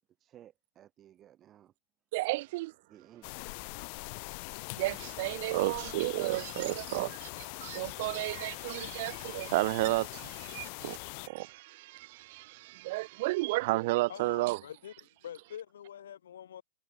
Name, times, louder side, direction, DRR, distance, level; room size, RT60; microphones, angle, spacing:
voice 1, 0.2-1.7 2.9-3.3, right 11 dB, 30° right, 5.0 m, -57 dB
voice 2, 2.1-2.7 4.8-11.0 11.2-14.6, right 21 dB, 55° right, 0.7 m, -32 dB
sound 1, 3.2-11.3, left 35 dB, 50° left, 0.9 m, -42 dB
voice 3, 14.1-14.9 15.2-16.6, left 9 dB, 70° left, 6.1 m, -45 dB
hypercardioid pair, 110°, 0 cm